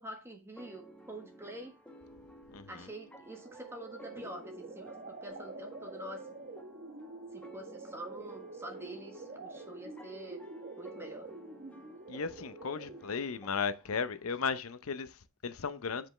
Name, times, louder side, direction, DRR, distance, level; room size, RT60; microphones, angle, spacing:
voice 1, 0.0-1.7 2.7-6.3 7.3-10.4 10.8-11.3, right 1 dB, 10° right, 1.4 m, -46 dB
sound 1, 0.6-14.3, right 1 dB, 5° left, 1.1 m, -55 dB
voice 2, 2.5-2.9 12.1-16.1, left 5 dB, 80° left, 0.7 m, -36 dB
sound 2, 3.3-13.2, right 3 dB, 40° right, 1.0 m, -47 dB
7.6 x 5.2 x 3.3 m
head